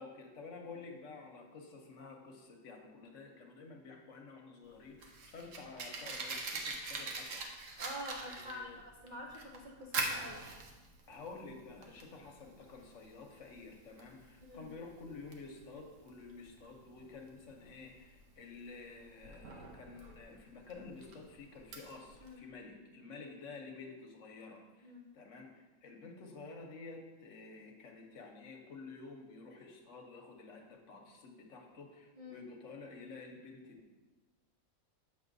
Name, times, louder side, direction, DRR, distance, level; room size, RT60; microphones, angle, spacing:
voice 1, 0.0-7.4 8.2-8.8 11.1-34.0, left 4 dB, 65° left, 2 dB, 1.1 m, -51 dB
Fire, 4.7-22.3, right 3 dB, 65° right, 1.1 m, -44 dB
voice 2, 7.8-10.4 14.4-14.7 22.2-22.5 23.2-23.3 24.8-25.0 32.2-32.4, equal, 50° right, -2 dB, 0.5 m, -47 dB
7.9 x 6.1 x 2.6 m, 1.2 s
omnidirectional pair, 1.5 m